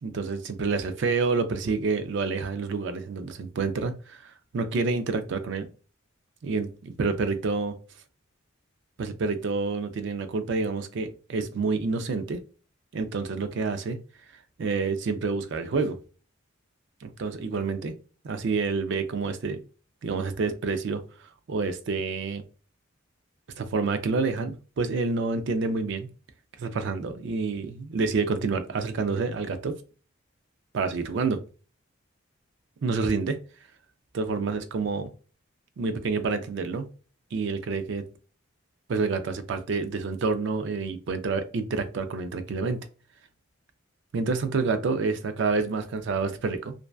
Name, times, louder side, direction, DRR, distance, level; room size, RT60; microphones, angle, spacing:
voice 1, 0.0-5.7 6.4-7.8 9.0-12.4 12.9-14.0 14.6-16.0 17.0-17.9 18.2-19.6 20.0-22.4 23.6-26.1 26.6-29.8 30.7-31.4 32.8-33.4 34.1-35.1 35.8-36.9 37.3-38.1 38.9-42.9 44.1-46.7, right 4 dB, 60° right, 0.4 m, -28 dB
2.6 x 2.2 x 2.3 m
head